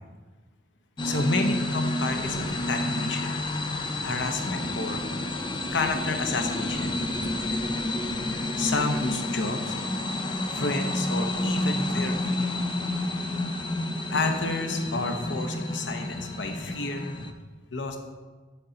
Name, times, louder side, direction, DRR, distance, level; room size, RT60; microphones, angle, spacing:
voice 1, 1.0-3.3 4.0-5.0 5.7-6.9 8.6-9.7 10.5-12.7 14.1-17.1 17.7-18.0, left 3 dB, 75° left, 5 dB, 0.8 m, -30 dB
sound 1, 1.0-17.3, left 1 dB, 25° left, 0.5 m, -30 dB
Thunder / Rain, 2.1-12.0, equal, 75° right, 1.9 m, -47 dB
6.6 x 5.5 x 3.9 m, 1.4 s
head